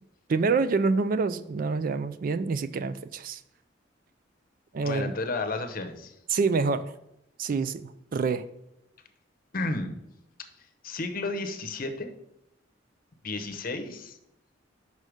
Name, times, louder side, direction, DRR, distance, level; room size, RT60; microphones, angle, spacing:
voice 1, 0.3-3.4 4.7-5.1 6.3-6.9 7.4-8.4, right 4 dB, 45° right, 13 dB, 0.3 m, -26 dB
voice 2, 4.8-6.2 9.5-10.0 10.8-12.1 13.2-14.2, left 2 dB, 50° left, 7 dB, 0.8 m, -32 dB
5.4 x 4.9 x 6.3 m, 0.84 s
head